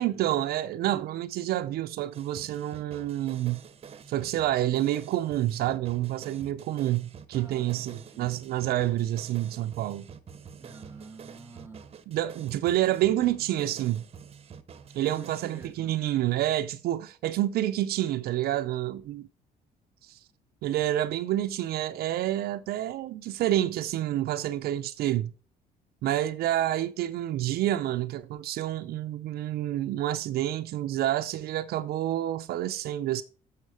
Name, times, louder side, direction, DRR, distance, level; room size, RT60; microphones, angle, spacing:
voice 1, 0.0-3.6 4.1-10.1 12.1-14.0 14.9-19.3 20.0-20.2 20.6-25.3 26.0-33.2, right 13 dB, 70° right, 0.5 m, -28 dB
sound 1, 2.1-15.7, right 7 dB, 35° right, 0.8 m, -48 dB
voice 2, 7.3-8.4 10.5-11.9 15.0-16.0, right 3 dB, 15° right, 1.5 m, -48 dB
7.1 x 6.3 x 4.8 m
cardioid pair, 110°, 17 cm